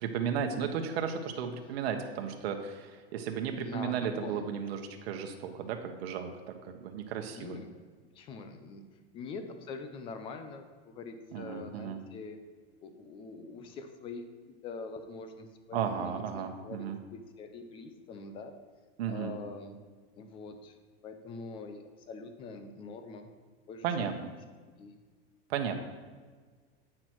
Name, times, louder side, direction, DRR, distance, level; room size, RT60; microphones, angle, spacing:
voice 1, 0.0-7.6 11.3-12.0 15.7-17.0 19.0-19.3 23.8-24.1 25.5-25.7, right 7 dB, 75° right, 4 dB, 1.1 m, -34 dB
voice 2, 3.5-4.5 7.3-7.7 8.1-8.8 9.1-12.4 12.8-18.5 19.1-19.8 20.1-20.8 21.0-23.3 23.7-24.1 24.8-25.0, left 4 dB, 15° left, 7 dB, 0.4 m, -44 dB
8.8 x 6.1 x 4.5 m, 1.5 s
supercardioid pair, 170°, 31 cm